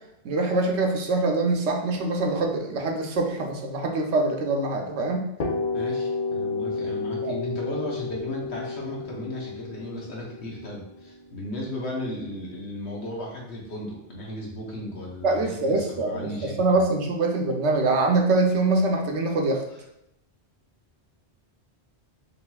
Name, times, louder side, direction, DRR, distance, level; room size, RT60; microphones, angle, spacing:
voice 1, 0.2-5.3 7.2-7.3 15.2-19.6, right 2 dB, 85° right, 2 dB, 1.0 m, -24 dB
sound 1, 5.4-13.1, left 4 dB, 50° left, 0.8 m, -32 dB
voice 2, 5.7-16.8, left 1 dB, 75° left, -2 dB, 1.3 m, -35 dB
5.0 x 2.8 x 2.3 m, 0.81 s
omnidirectional pair, 1.1 m